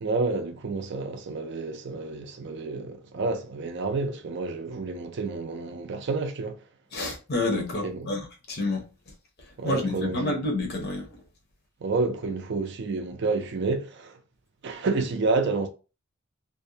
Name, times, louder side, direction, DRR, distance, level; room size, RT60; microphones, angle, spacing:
voice 1, 0.0-6.6 7.8-8.1 9.6-10.4 11.8-14.2 14.6-15.7, right 3 dB, 50° right, 0.4 m, -29 dB
voice 2, 6.9-8.2 8.5-8.8 9.6-11.1, left 2 dB, 45° left, 0.7 m, -28 dB
2.5 x 2.1 x 2.7 m
head